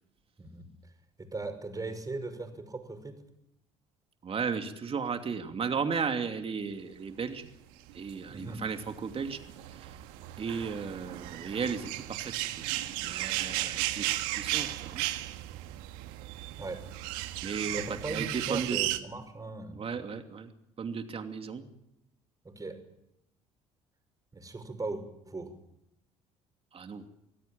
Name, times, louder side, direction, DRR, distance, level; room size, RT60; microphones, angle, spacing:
voice 1, 0.4-0.9 1.2-3.2 8.3-8.7 16.6-16.8 17.7-19.8 22.4-22.8 24.3-25.5, right 3 dB, 25° right, 8 dB, 6.0 m, -38 dB
voice 2, 4.2-7.5 7.9-9.4 9.7-10.0 10.4-12.5 13.0-15.1 17.4-17.8 18.1-18.8 19.7-20.5 20.8-21.7 26.7-27.1, right 5 dB, 40° right, 6 dB, 2.8 m, -35 dB
sound 1, 7.9-19.0, right 16 dB, 75° right, 1.6 m, -35 dB
25.0 x 17.0 x 9.0 m, 0.83 s
hypercardioid pair, 60°, 15 cm